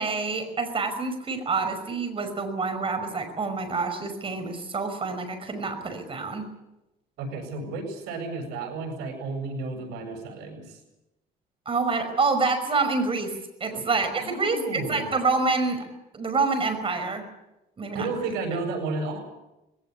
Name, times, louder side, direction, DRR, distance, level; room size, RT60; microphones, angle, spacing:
voice 1, 0.0-6.5 11.7-15.9 16.1-17.2 17.8-18.1, right 4 dB, 30° right, 8 dB, 5.5 m, -27 dB
voice 2, 7.2-10.8 13.6-13.8 14.1-15.1 17.9-19.2, right 3 dB, 90° right, 4 dB, 7.8 m, -32 dB
21.0 x 18.0 x 9.8 m, 0.95 s
cardioid pair, 110°, 17 cm